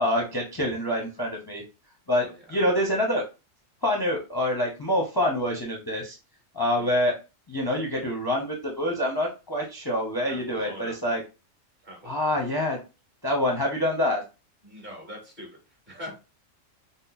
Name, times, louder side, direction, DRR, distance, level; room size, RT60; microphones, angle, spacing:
voice 1, 0.0-1.6 2.1-3.2 3.8-6.2 6.5-7.1 7.5-11.2 12.0-12.8 13.2-14.2, left 1 dB, 20° left, 0 dB, 0.8 m, -26 dB
voice 2, 2.2-2.6 6.8-6.9 10.2-11.0 11.8-12.3 14.6-15.5 15.9-16.1, equal, 35° right, -1 dB, 2.6 m, -42 dB
6.0 x 2.1 x 4.0 m, 0.29 s
omnidirectional pair, 1.3 m